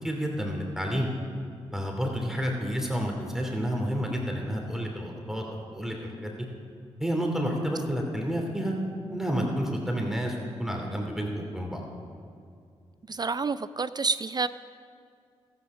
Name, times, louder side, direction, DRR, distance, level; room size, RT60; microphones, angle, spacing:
voice 1, 0.0-1.1 1.7-6.3 7.0-8.7 9.1-11.8, equal, 5° right, 1 dB, 2.7 m, -30 dB
voice 2, 13.1-14.5, right 4 dB, 35° right, 15 dB, 0.4 m, -28 dB
13.5 x 10.0 x 6.1 m, 2.4 s
supercardioid pair, 40°, 12 cm